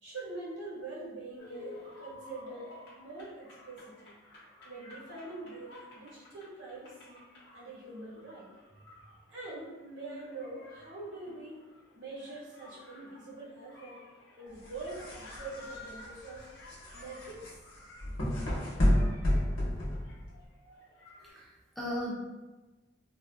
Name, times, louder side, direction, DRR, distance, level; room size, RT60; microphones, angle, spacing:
voice 1, 0.0-4.1 4.6-7.2 7.5-8.5 9.3-11.6 11.9-14.0 14.4-16.4 16.9-17.4, right 2 dB, 70° right, -8 dB, 1.2 m, -44 dB
sound 1, 1.4-21.3, left 1 dB, 55° left, 0.7 m, -53 dB
sound 2, 14.5-20.4, left 1 dB, 85° left, 0.8 m, -31 dB
voice 2, 21.2-22.1, equal, ahead, -7 dB, 0.4 m, -37 dB
3.5 x 2.1 x 2.3 m, 1.2 s
head